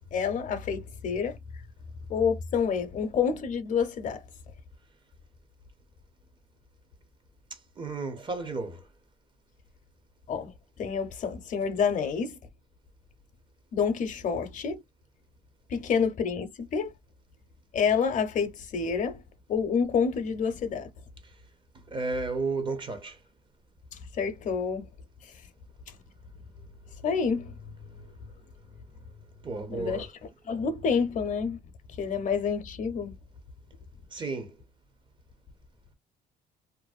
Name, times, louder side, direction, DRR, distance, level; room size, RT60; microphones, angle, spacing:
voice 1, 0.1-1.4 2.1-4.2 10.3-10.5 10.8-12.4 13.7-14.8 15.7-16.9 17.7-19.2 19.5-20.9 24.1-24.9 27.0-27.5 29.7-30.1 30.4-31.6 31.9-33.1, left 6 dB, 50° left, 0.6 m, -28 dB
voice 2, 7.8-8.8 21.9-23.2 29.4-30.1 34.1-34.5, right 3 dB, 30° right, 0.6 m, -32 dB
2.5 x 2.1 x 2.4 m
cardioid pair, 110°, 17 cm